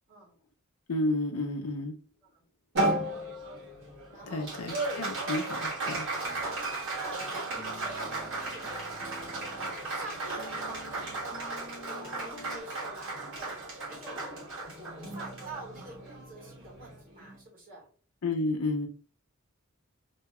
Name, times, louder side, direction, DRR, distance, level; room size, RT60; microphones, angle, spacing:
voice 1, 0.9-2.0 4.3-6.1 18.2-18.9, left 2 dB, 90° left, 5 dB, 0.6 m, -31 dB
Applause, 2.8-17.4, right 2 dB, 60° right, 1.3 m, -35 dB
voice 2, 4.1-4.6 6.2-6.7 6.9-8.8 9.5-13.5 13.8-14.4 14.7-17.9, right 2 dB, 40° right, -3 dB, 1.4 m, -47 dB
sound 1, 7.5-12.6, equal, 15° left, 0.5 m, -49 dB
2.8 x 2.2 x 2.9 m, 0.42 s
head